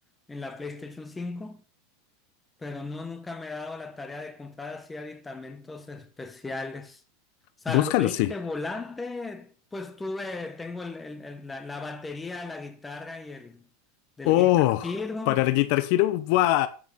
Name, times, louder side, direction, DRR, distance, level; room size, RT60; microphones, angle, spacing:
voice 1, 0.3-1.6 2.6-7.0 7.6-13.7 14.2-14.5 14.8-15.4, left 3 dB, 10° left, 1.4 m, -36 dB
voice 2, 7.7-8.3 14.3-14.9 15.3-16.7, left 15 dB, 60° left, 0.9 m, -22 dB
13.0 x 6.1 x 5.8 m
supercardioid pair, 135°, 0 cm